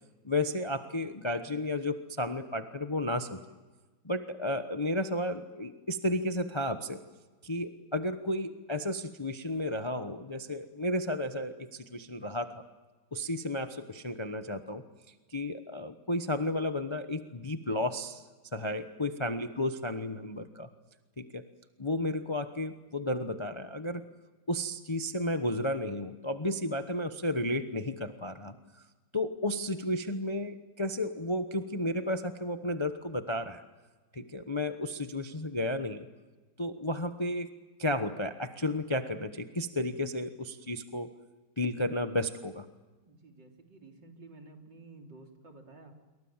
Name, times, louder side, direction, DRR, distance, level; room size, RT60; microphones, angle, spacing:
voice 1, 0.2-3.4 4.0-7.0 7.4-12.6 13.1-14.8 15.3-18.2 18.5-20.7 21.2-21.4 21.8-24.1 24.5-28.5 29.1-33.6 34.1-36.1 36.6-37.5 37.8-41.1 41.6-42.7, left 1 dB, 25° left, 8 dB, 0.7 m, -33 dB
voice 2, 43.1-45.9, right 3 dB, 65° right, 2 dB, 4.1 m, -52 dB
27.5 x 23.0 x 7.4 m, 1.3 s
omnidirectional pair, 2.1 m